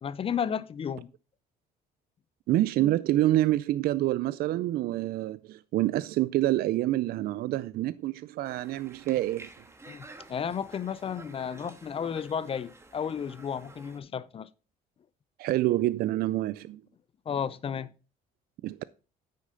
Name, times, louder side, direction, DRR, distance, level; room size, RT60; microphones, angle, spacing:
voice 1, 0.0-1.1 9.9-14.5 17.3-17.9, left 7 dB, 35° left, 0.5 m, -33 dB
voice 2, 2.5-9.5 15.4-16.8 18.6-18.8, right 15 dB, 65° right, 0.4 m, -27 dB
Conversation, 8.4-14.0, right 2 dB, 15° right, 1.6 m, -51 dB
9.3 x 6.5 x 3.8 m
cardioid pair, 110°, 17 cm